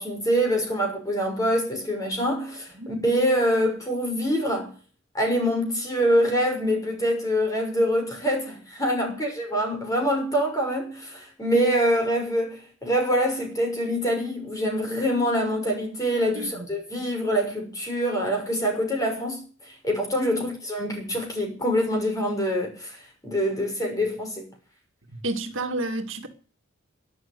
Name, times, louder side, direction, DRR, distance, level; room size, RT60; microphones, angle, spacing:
voice 1, 0.0-4.7 5.1-24.5, equal, 15° left, 6.1 m, -25 dB
voice 2, 16.3-16.7 25.2-26.3, right 2 dB, 65° right, 2.1 m, -30 dB
12.5 x 11.0 x 9.6 m
head